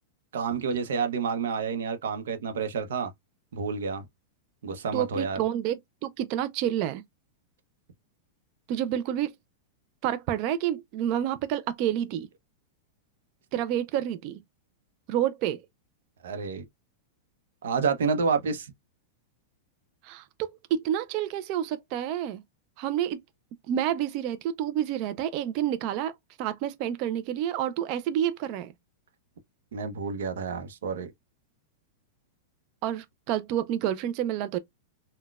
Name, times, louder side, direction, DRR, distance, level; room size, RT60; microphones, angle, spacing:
voice 1, 0.3-3.1 3.5-4.1 4.6-5.4 16.2-16.6 17.6-18.7 29.7-31.1, right 5 dB, 85° right, 0.6 m, -29 dB
voice 2, 4.9-5.8 6.0-7.0 8.7-9.3 10.0-12.3 13.5-14.4 15.1-15.6 20.0-22.4 22.8-23.2 23.7-26.1 26.4-28.7 32.8-34.6, right 11 dB, 40° right, 0.3 m, -29 dB
3.8 x 2.1 x 2.3 m
supercardioid pair, 155°, 0 cm